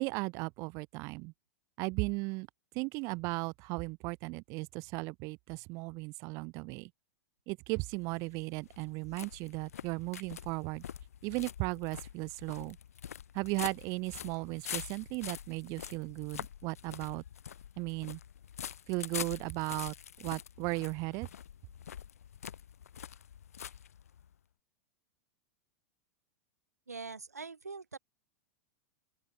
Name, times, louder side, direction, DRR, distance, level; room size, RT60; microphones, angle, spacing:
voice 1, 0.0-1.3 1.8-2.5 2.7-6.9 7.5-10.8 11.2-12.8 13.3-17.2 17.8-18.2 18.9-21.3, right 27 dB, 40° right, 0.5 m, -36 dB
sound 1, 7.8-24.3, left 9 dB, 70° left, 0.8 m, -45 dB
voice 2, 26.9-28.0, right 4 dB, 85° right, 0.7 m, -43 dB
open air
figure-of-eight pair, 90°, 8 cm